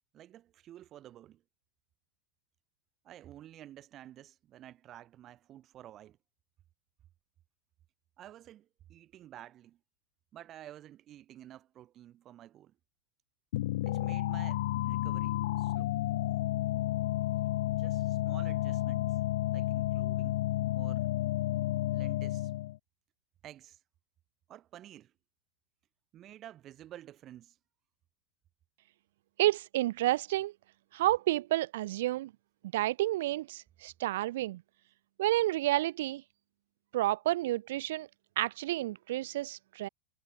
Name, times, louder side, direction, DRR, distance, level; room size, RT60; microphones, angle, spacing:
voice 1, 0.1-1.4 3.0-6.2 8.2-9.8 10.3-12.8 13.8-16.0 17.7-19.2 19.5-20.4 20.7-21.1 21.9-22.5 23.4-23.8 24.5-25.1 26.1-27.6, right 12 dB, 30° right, 4.3 m, -51 dB
sound 1, 13.5-22.8, left 15 dB, 55° left, 0.5 m, -31 dB
voice 2, 29.4-30.5 30.9-32.3 32.7-34.6 35.2-36.2 36.9-38.1 38.4-39.9, right 16 dB, 55° right, 0.4 m, -30 dB
figure-of-eight pair, 90°, 0 cm